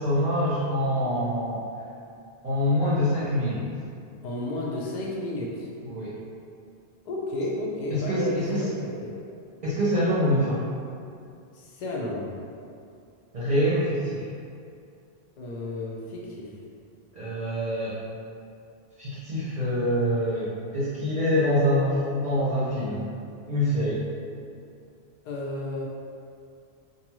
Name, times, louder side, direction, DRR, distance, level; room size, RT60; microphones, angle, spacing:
voice 1, 0.0-1.6 2.4-3.6 5.8-6.2 7.9-8.7 9.6-10.6 13.3-14.3 17.1-18.0 19.0-23.1 23.5-24.0, equal, 50° right, -10 dB, 0.6 m, -25 dB
voice 2, 4.2-5.7 7.1-9.1 11.5-12.3 15.4-16.5 25.3-25.9, left 1 dB, 55° left, -3 dB, 0.5 m, -32 dB
2.5 x 2.3 x 3.0 m, 2.5 s
omnidirectional pair, 1.1 m